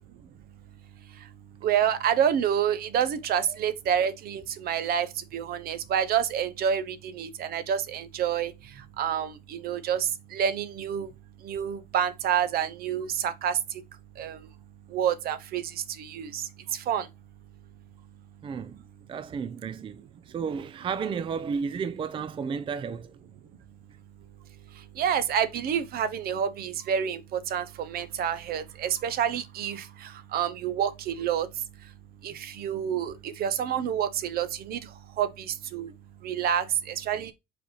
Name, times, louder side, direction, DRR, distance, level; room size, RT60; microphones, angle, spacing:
voice 1, 1.6-5.1 5.3-8.5 9.0-11.1 11.4-13.6 14.2-14.4 14.9-15.6 16.0-16.4 16.7-17.1 25.0-31.5 32.2-34.8 35.2-35.9 36.2-37.3, right 9 dB, 65° right, 0.7 m, -28 dB
voice 2, 18.4-18.8 19.1-23.2, right 6 dB, 30° right, 0.4 m, -33 dB
4.8 x 3.4 x 3.0 m
cardioid pair, 110°, 17 cm